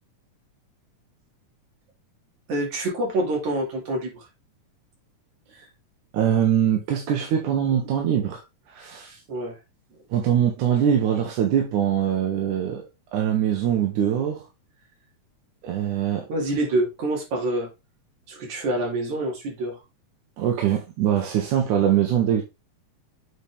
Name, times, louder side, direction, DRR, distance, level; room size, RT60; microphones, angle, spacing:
voice 1, 2.5-4.3 9.3-9.6 16.3-17.7 18.3-19.8, right 1 dB, 70° right, 3.8 m, -26 dB
voice 2, 6.1-8.4 8.7-9.2 10.1-12.8 13.1-14.4 15.6-16.3 20.4-22.4, right 9 dB, 85° right, 2.5 m, -22 dB
8.1 x 4.3 x 3.5 m
omnidirectional pair, 3.4 m